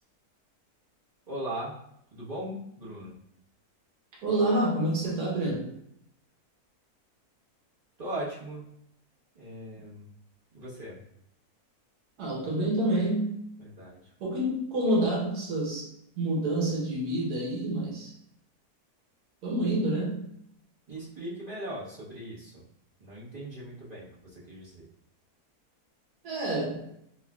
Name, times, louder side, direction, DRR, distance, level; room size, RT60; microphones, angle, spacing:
voice 1, 1.3-1.8 2.1-3.2 8.0-8.7 9.3-10.0 10.5-11.0 12.4-12.5 13.6-14.0 20.9-22.6 23.0-24.9, right 1 dB, 30° right, -9 dB, 1.1 m, -39 dB
voice 2, 4.2-5.7 12.2-13.3 14.2-15.9 16.2-18.1 19.4-20.2 26.2-26.9, right 1 dB, 85° right, -3 dB, 1.4 m, -28 dB
4.7 x 2.4 x 2.3 m, 0.75 s
omnidirectional pair, 1.6 m